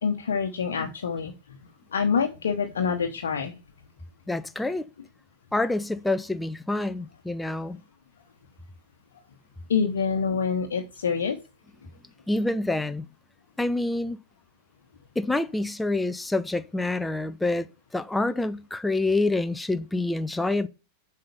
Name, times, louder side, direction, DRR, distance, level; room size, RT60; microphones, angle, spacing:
voice 1, 0.0-1.3 1.9-3.6 9.7-11.4, left 6 dB, 65° left, 1.0 m, -26 dB
voice 2, 4.3-4.8 5.5-7.8 12.3-13.1 13.6-14.2 15.2-17.7 17.9-20.7, left 2 dB, 5° left, 0.6 m, -27 dB
7.7 x 5.5 x 6.7 m
figure-of-eight pair, 90°, 0 cm